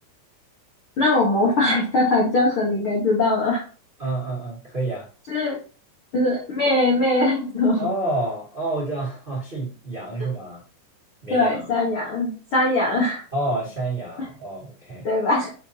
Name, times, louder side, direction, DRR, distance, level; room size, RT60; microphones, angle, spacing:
voice 1, 1.0-3.6 5.3-5.6 6.1-7.9 11.3-13.2 15.0-15.5, left 2 dB, 55° left, -4 dB, 1.4 m, -21 dB
voice 2, 4.0-5.1 7.8-10.6 11.2-11.7 13.3-15.1, right 2 dB, 20° right, -5 dB, 1.6 m, -28 dB
6.9 x 5.6 x 2.9 m, 0.36 s
omnidirectional pair, 5.0 m